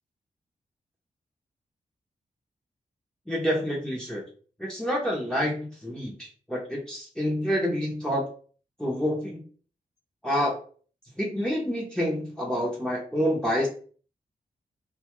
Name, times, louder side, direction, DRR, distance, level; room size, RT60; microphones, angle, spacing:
voice 1, 3.3-4.2 4.6-8.2 8.8-9.4 10.2-10.5 11.2-13.7, equal, 5° left, -4 dB, 0.7 m, -28 dB
2.7 x 2.3 x 3.0 m, 0.42 s
wide cardioid pair, 110°, 14 cm